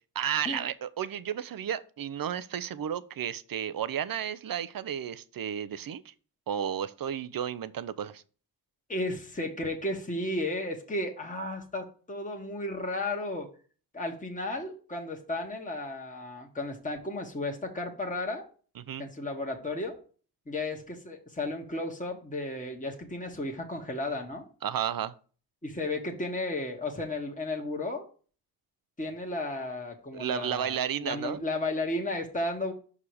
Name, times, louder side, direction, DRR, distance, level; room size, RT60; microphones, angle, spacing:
voice 1, 0.2-6.1 6.5-8.2 18.8-19.0 24.6-25.1 30.1-31.4, right 9 dB, 55° right, 0.6 m, -33 dB
voice 2, 8.9-13.5 13.9-18.4 19.0-20.0 20.5-24.4 25.6-28.1 29.0-32.7, left 2 dB, 20° left, 1.4 m, -34 dB
5.6 x 4.9 x 4.9 m
cardioid pair, 50°, 43 cm